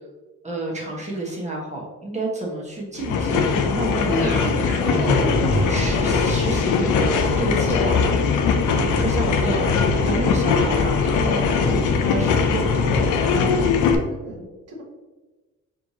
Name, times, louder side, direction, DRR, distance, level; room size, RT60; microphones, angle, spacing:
voice 1, 0.4-5.2 5.5-8.0 8.8-13.2, right 2 dB, 25° right, -2 dB, 1.2 m, -30 dB
sound 1, 3.0-13.9, left 5 dB, 80° left, 0.6 m, -20 dB
sound 2, 4.0-12.3, equal, 25° left, 1.2 m, -30 dB
voice 2, 9.1-9.4 14.1-14.8, right 2 dB, 55° right, -2 dB, 1.0 m, -39 dB
4.2 x 3.2 x 2.8 m, 1.2 s
cardioid pair, 90°, 30 cm